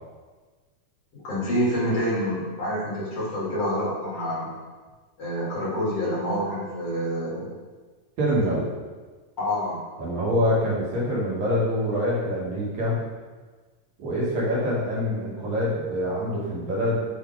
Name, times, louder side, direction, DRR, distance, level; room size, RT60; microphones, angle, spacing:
voice 1, 1.1-4.5 5.2-7.5 9.4-9.8, equal, 55° left, -7 dB, 3.9 m, -27 dB
voice 2, 8.2-8.7 10.0-13.0 14.0-17.1, equal, 70° right, -6 dB, 3.3 m, -25 dB
9.3 x 5.0 x 4.7 m, 1.4 s
omnidirectional pair, 3.4 m